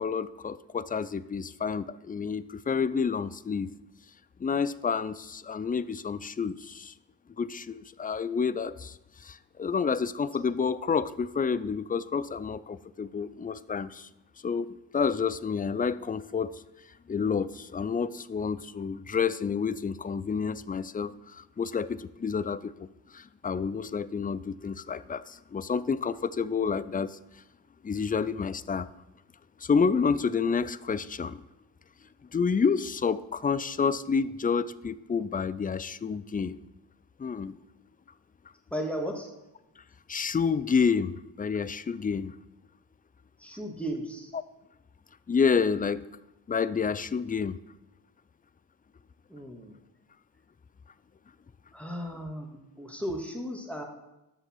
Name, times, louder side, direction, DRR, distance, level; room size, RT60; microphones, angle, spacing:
voice 1, 0.0-3.7 4.4-6.9 7.4-14.1 14.4-16.6 17.1-22.9 23.1-27.2 27.8-28.9 29.6-31.4 32.3-36.6 37.2-37.5 40.1-42.3 45.3-46.1 46.5-47.6, left 5 dB, 20° left, 16 dB, 0.4 m, -29 dB
voice 2, 38.7-39.3 43.4-44.3 49.3-49.8 51.7-53.8, equal, 5° left, 1 dB, 2.1 m, -35 dB
9.8 x 6.6 x 4.6 m, 0.95 s
supercardioid pair, 45°, 47 cm